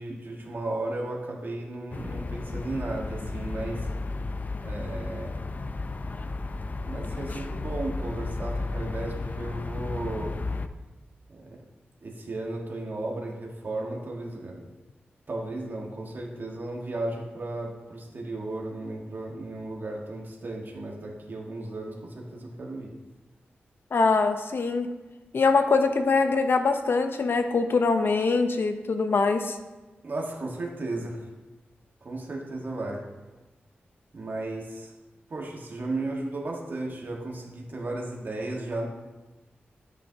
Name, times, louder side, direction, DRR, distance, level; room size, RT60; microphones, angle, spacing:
voice 1, 0.0-3.9 4.6-5.3 6.9-10.3 11.3-11.5 12.0-14.6 15.3-22.9 30.0-31.3 32.0-33.0 34.1-34.9 35.3-38.9, right 2 dB, 55° right, -1 dB, 1.5 m, -34 dB
sound 1, 1.9-10.7, left 3 dB, 40° left, 0.5 m, -33 dB
voice 2, 23.9-24.9 25.3-29.6, left 4 dB, 65° left, 7 dB, 0.8 m, -23 dB
10.0 x 8.5 x 2.8 m, 1.2 s
cardioid pair, 75°, 4 cm